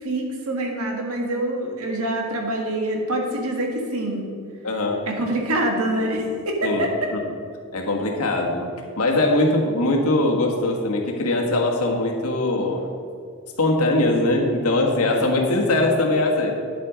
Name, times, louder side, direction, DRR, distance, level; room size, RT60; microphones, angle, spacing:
voice 1, 0.0-4.3 5.1-7.1, right 1 dB, 80° right, 1 dB, 1.7 m, -25 dB
voice 2, 4.6-5.0 6.6-6.8 7.7-8.7 9.0-12.9 13.6-16.5, left 2 dB, 85° left, 0 dB, 1.6 m, -21 dB
10.0 x 7.8 x 5.1 m, 2.3 s
head